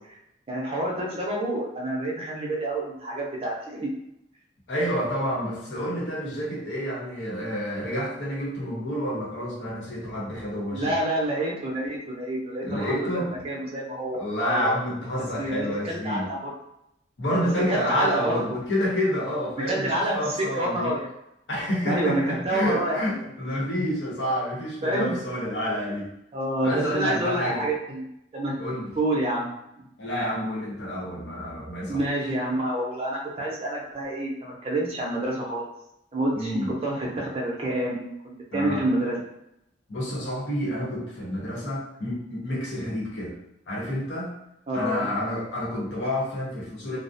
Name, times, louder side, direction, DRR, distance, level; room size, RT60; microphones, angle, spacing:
voice 1, 0.5-3.9 10.7-14.7 15.2-16.5 17.7-18.6 19.7-20.1 20.5-21.1 21.8-23.0 23.7-23.9 24.8-25.2 26.3-28.1 28.3-28.6 29.0-29.5 31.9-35.7 36.1-36.5 36.8-39.2 44.7-45.1, right 1 dB, 35° right, -3 dB, 0.5 m, -28 dB
voice 2, 4.7-10.9 12.6-13.4 14.1-16.3 17.2-20.9 21.5-26.1 26.6-27.7 28.6-28.9 30.0-32.0 36.3-36.7 38.5-38.8 39.9-43.4 43.7-44.3 44.7-47.0, equal, 80° left, -5 dB, 0.9 m, -29 dB
2.3 x 2.0 x 2.6 m, 0.82 s
head